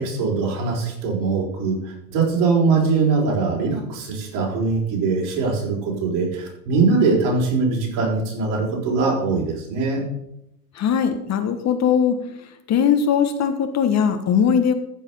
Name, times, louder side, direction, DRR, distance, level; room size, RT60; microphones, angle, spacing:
voice 1, 0.0-10.0, right 4 dB, 60° right, -2 dB, 5.1 m, -22 dB
voice 2, 10.7-12.2 12.7-14.7, left 7 dB, 35° left, 7 dB, 1.3 m, -19 dB
14.5 x 5.6 x 5.6 m, 0.81 s
hypercardioid pair, 90°, 49 cm